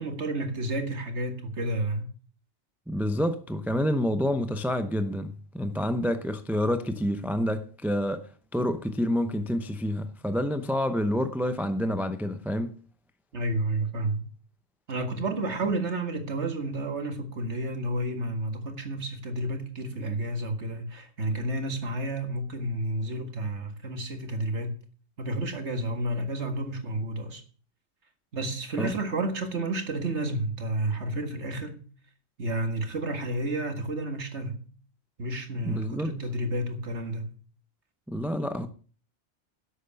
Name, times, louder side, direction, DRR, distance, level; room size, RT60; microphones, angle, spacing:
voice 1, 0.0-2.1 13.3-14.2 14.9-24.7 25.2-27.4 28.3-31.8 32.4-34.6 35.2-37.3, right 1 dB, 65° right, 2.0 m, -31 dB
voice 2, 2.9-8.2 8.5-12.7 28.8-28.9 35.6-36.1 38.1-38.7, equal, ahead, 0.5 m, -28 dB
11.0 x 8.1 x 7.0 m
omnidirectional pair, 1.3 m